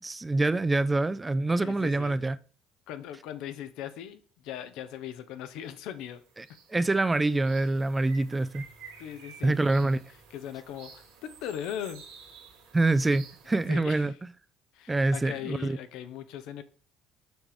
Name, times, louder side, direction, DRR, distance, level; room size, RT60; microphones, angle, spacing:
voice 1, 0.0-2.4 6.7-8.6 9.4-10.0 12.7-14.1 14.9-15.8, right 2 dB, 20° right, 0.5 m, -25 dB
voice 2, 1.6-2.2 2.9-6.2 9.0-9.6 10.3-12.0 13.6-14.1 14.7-16.6, left 10 dB, 75° left, 0.8 m, -39 dB
sound 1, 5.6-5.8 6.0-13.7, right 5 dB, 90° right, 1.8 m, -52 dB
6.3 x 4.8 x 5.1 m
supercardioid pair, 75°, 0 cm